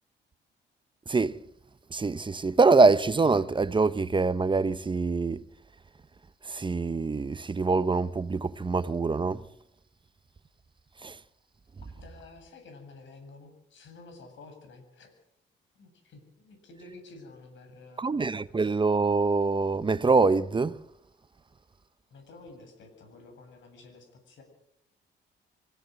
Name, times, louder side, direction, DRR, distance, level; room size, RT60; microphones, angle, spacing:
voice 1, 1.1-1.4 1.9-5.4 6.4-9.4 11.0-11.2 18.0-20.8, right 4 dB, 25° right, 0.9 m, -24 dB
voice 2, 11.8-15.1 15.7-18.2 22.1-24.4, left 3 dB, 70° left, 7.9 m, -50 dB
25.5 x 16.5 x 7.7 m
cardioid pair, 90°, 20 cm